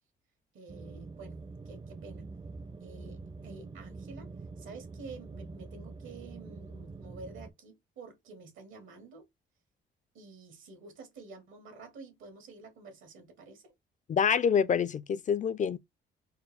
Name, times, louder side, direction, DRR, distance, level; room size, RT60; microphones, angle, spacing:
voice 1, 0.5-1.4 1.6-2.3 2.8-4.3 4.6-9.3 10.1-13.7, right 4 dB, 80° right, 1.8 m, -49 dB
sound 1, 0.7-7.5, right 3 dB, 25° right, 0.5 m, -45 dB
voice 2, 14.1-15.8, left 7 dB, 40° left, 0.4 m, -26 dB
4.3 x 2.0 x 3.3 m
cardioid pair, 90°, 20 cm